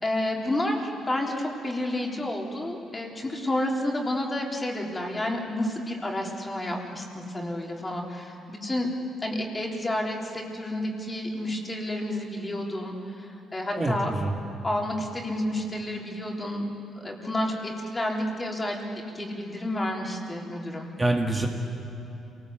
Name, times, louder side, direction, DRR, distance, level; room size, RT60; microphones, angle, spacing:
voice 1, 0.0-8.9 9.2-14.1 14.6-16.7 17.0-20.9, left 1 dB, 20° left, 0 dB, 3.7 m, -30 dB
voice 2, 13.8-14.4 21.0-21.5, right 2 dB, 20° right, 0 dB, 2.2 m, -25 dB
27.0 x 19.5 x 8.0 m, 3.0 s
cardioid pair, 90°, 0 cm